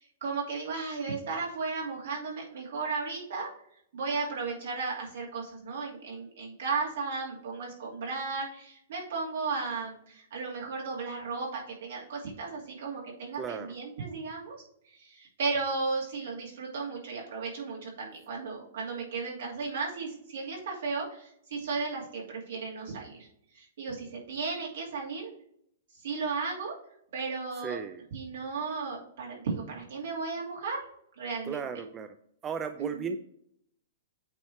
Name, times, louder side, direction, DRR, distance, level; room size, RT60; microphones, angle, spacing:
voice 1, 0.0-3.5 3.9-14.6 14.9-23.3 23.5-25.3 26.0-26.7 27.1-27.8 28.1-30.8 31.2-31.7 32.8-33.1, right 4 dB, 70° right, -2 dB, 2.4 m, -35 dB
voice 2, 13.4-13.8 27.6-28.0 31.4-32.1 32.4-33.2, right 6 dB, 20° right, 8 dB, 0.4 m, -35 dB
8.6 x 3.1 x 4.2 m, 0.70 s
hypercardioid pair, 125°, 0 cm